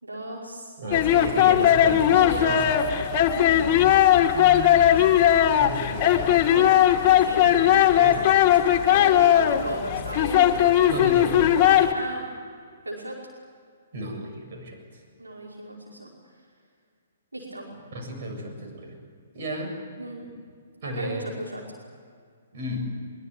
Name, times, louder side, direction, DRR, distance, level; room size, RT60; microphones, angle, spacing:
voice 1, 0.0-0.8 2.1-2.7 3.5-3.6 3.9-4.1 4.8-5.2 7.2-8.5 9.0-10.6 11.9-12.2 12.9-13.2 15.2-16.1 17.3-17.7 20.0-20.3 20.8-21.6, right 1 dB, 85° right, -2 dB, 5.2 m, -36 dB
voice 2, 0.8-2.6 4.5-4.9 5.4-6.8 8.0-8.2 8.9-9.1 10.9-11.6 13.9-15.0 17.9-19.0 19.3-19.8 20.8-21.3 22.5-22.9, equal, 50° right, 3 dB, 7.4 m, -34 dB
sound 1, 0.9-11.9, left 11 dB, 30° left, 2.0 m, -19 dB
23.5 x 23.5 x 9.3 m, 2.1 s
figure-of-eight pair, 125°, 0 cm